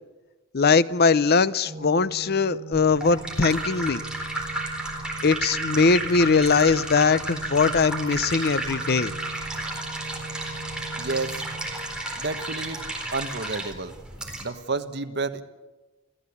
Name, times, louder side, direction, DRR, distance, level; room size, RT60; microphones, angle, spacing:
voice 1, 0.5-4.0 5.2-9.1, left 4 dB, 50° left, 16 dB, 0.6 m, -21 dB
Organ, 1.7-12.6, right 4 dB, 35° right, 1.4 m, -41 dB
sound 1, 2.7-14.4, right 1 dB, 5° right, 4.1 m, -32 dB
voice 2, 11.0-11.3 12.2-12.8 13.1-13.9 14.4-15.4, right 3 dB, 55° right, 7 dB, 1.5 m, -30 dB
27.5 x 15.5 x 8.5 m, 1.2 s
head